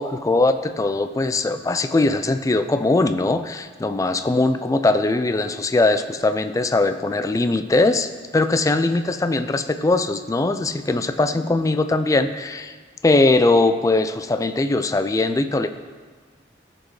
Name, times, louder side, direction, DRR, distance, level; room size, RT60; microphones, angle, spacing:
voice 1, 0.0-12.7 13.0-15.7, left 2 dB, 20° left, 9 dB, 0.3 m, -20 dB
14.5 x 5.2 x 3.2 m, 1.5 s
head